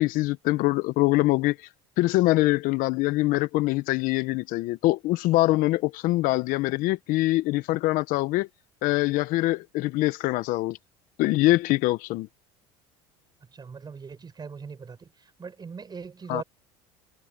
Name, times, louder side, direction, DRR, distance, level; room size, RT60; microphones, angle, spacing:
voice 1, 0.0-1.6 2.0-8.5 8.8-10.8 11.2-12.3 16.3-16.4, left 19 dB, 65° left, 1.0 m, -24 dB
voice 2, 13.5-16.4, right 5 dB, 25° right, 5.9 m, -40 dB
supercardioid pair, 95°, 15 cm